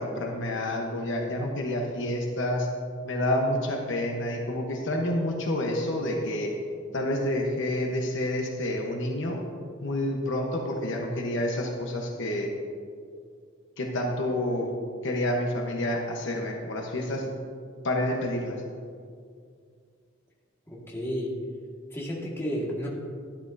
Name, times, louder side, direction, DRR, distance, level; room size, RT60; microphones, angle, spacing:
voice 1, 0.0-2.7 3.0-6.6 6.9-9.4 9.8-12.5 13.8-14.7 15.0-17.3 17.8-18.6, left 1 dB, 65° left, 1 dB, 1.1 m, -28 dB
voice 2, 20.7-21.3 21.9-22.9, equal, 15° left, -5 dB, 1.8 m, -32 dB
11.5 x 11.5 x 2.7 m, 2.2 s
head